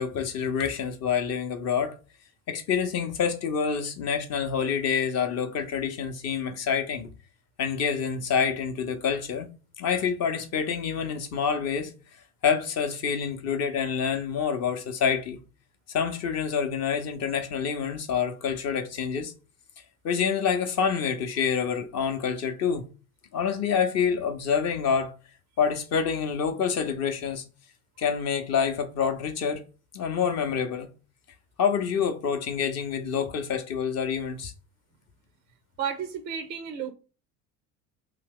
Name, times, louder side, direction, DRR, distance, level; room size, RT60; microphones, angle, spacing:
voice 1, 0.0-1.9 2.5-7.1 7.6-9.5 9.8-11.9 12.4-15.4 15.9-19.3 20.0-22.9 23.3-25.1 25.6-27.4 28.0-29.6 29.9-30.9 31.6-34.5, left 7 dB, 35° left, 0.7 m, -27 dB
voice 2, 35.8-36.9, right 8 dB, 25° right, 0.3 m, -32 dB
2.7 x 2.4 x 3.5 m
figure-of-eight pair, 65°, 43 cm